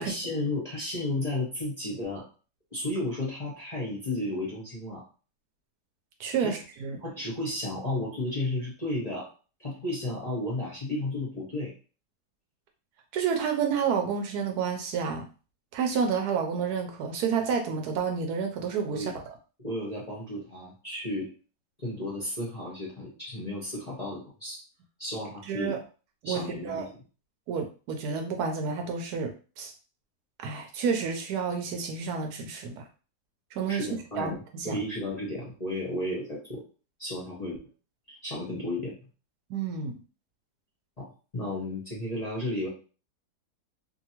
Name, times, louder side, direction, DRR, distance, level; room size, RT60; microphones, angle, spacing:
voice 1, 0.0-2.2 2.7-5.0 6.4-6.6 7.0-9.3 9.6-11.7 18.9-19.2 19.6-21.3 21.8-24.6 25.0-25.8 26.2-26.9 33.7-36.6 37.0-37.6 38.1-39.0 41.0-41.1 41.3-42.7, left 1 dB, 35° left, -5 dB, 0.7 m, -33 dB
voice 2, 6.2-7.0 13.1-15.2 15.7-19.1 25.4-25.8 26.2-26.9 27.5-29.7 30.4-32.8 33.6-34.8 39.5-40.0, right 6 dB, 75° right, 4 dB, 1.1 m, -30 dB
2.7 x 2.5 x 2.8 m, 0.36 s
omnidirectional pair, 1.8 m